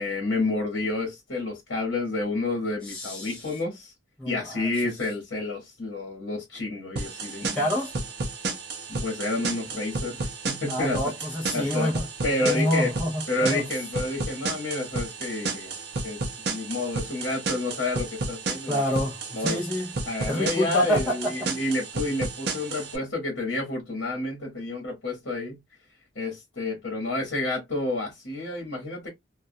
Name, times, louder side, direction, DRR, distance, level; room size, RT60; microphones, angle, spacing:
voice 1, 0.0-3.9 4.3-7.6 8.9-11.0 11.5-11.9 12.2-12.9 13.3-15.8 16.0-16.2 16.4-18.8 19.3-19.6 20.1-25.6 26.1-29.1, left 2 dB, 65° left, 1.1 m, -29 dB
voice 2, 2.8-3.5 4.2-4.9 7.4-7.9 10.7-12.1 12.4-13.7 18.7-19.9 20.3-21.3, equal, 5° left, 0.6 m, -28 dB
sound 1, 7.0-23.0, right 3 dB, 55° right, 0.5 m, -32 dB
2.3 x 2.2 x 2.6 m
head